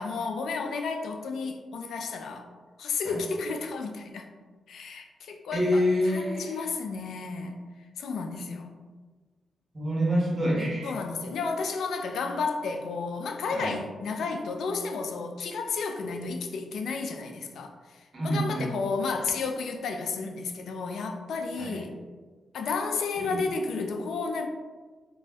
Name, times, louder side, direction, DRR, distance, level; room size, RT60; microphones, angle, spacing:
voice 1, 0.0-2.5 2.8-4.3 4.7-7.5 8.0-8.8 10.8-21.9 22.5-24.5, left 4 dB, 80° left, 5 dB, 0.3 m, -32 dB
voice 2, 5.5-6.6 9.7-10.9 13.5-13.8 18.1-18.7 21.6-21.8 23.2-23.4, equal, 40° right, -4 dB, 1.0 m, -27 dB
2.5 x 2.1 x 3.3 m, 1.4 s
cardioid pair, 80°, 0 cm